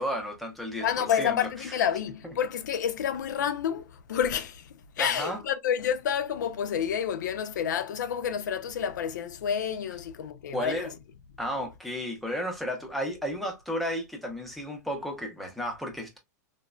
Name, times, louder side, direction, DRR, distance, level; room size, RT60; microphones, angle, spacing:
voice 1, 0.0-1.8 5.0-5.4 10.5-10.9 11.4-16.2, equal, ahead, 0.5 m, -33 dB
voice 2, 0.8-10.9, left 8 dB, 90° left, 0.4 m, -29 dB
3.1 x 2.0 x 2.3 m
supercardioid pair, 170°, 10 cm